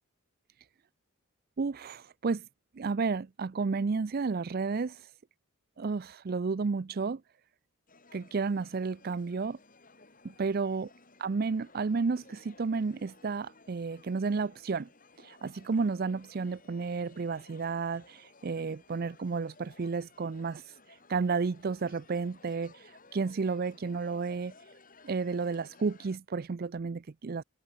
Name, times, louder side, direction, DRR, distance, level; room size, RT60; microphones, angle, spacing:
voice 1, 1.6-2.4 2.8-5.0 5.8-7.2 8.1-9.6 10.2-10.9 11.2-14.9 15.2-20.6 21.1-22.8 23.1-24.5 25.0-27.4, right 4 dB, 45° right, 0.4 m, -32 dB
sound 1, 7.9-26.2, left 3 dB, 40° left, 7.6 m, -58 dB
head